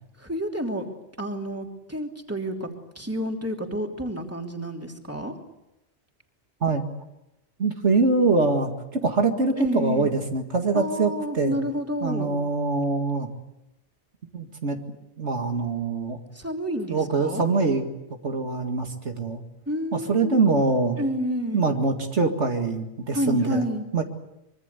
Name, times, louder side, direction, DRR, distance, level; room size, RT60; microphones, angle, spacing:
voice 1, 0.2-0.9 1.2-2.7 2.9-5.3 9.6-10.2 10.7-12.3 16.3-17.4 19.7-20.4 21.0-21.7 23.1-23.8, equal, 10° right, 2 dB, 3.1 m, -29 dB
voice 2, 7.6-11.6 12.0-13.3 14.3-14.8 15.2-16.2 16.9-17.9 18.2-19.4 19.9-21.0 21.5-23.6 23.9-24.0, right 3 dB, 75° right, 4 dB, 2.4 m, -24 dB
25.0 x 24.0 x 8.3 m, 0.91 s
omnidirectional pair, 1.2 m